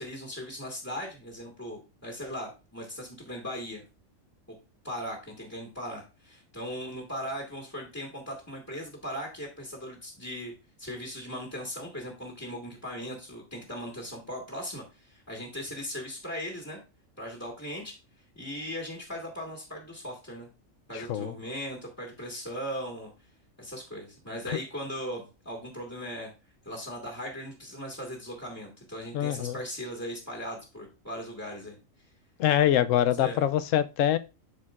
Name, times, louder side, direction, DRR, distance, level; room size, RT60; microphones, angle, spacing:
voice 1, 0.0-3.8 4.8-10.5 10.8-16.8 17.2-18.0 18.4-20.5 20.9-23.1 23.6-26.3 26.6-31.8 33.2-33.4, equal, 10° left, 1.6 m, -38 dB
voice 2, 20.9-21.3 24.5-24.6 29.1-29.6 32.4-34.2, left 11 dB, 75° left, 0.9 m, -24 dB
11.5 x 4.4 x 2.4 m
omnidirectional pair, 1.4 m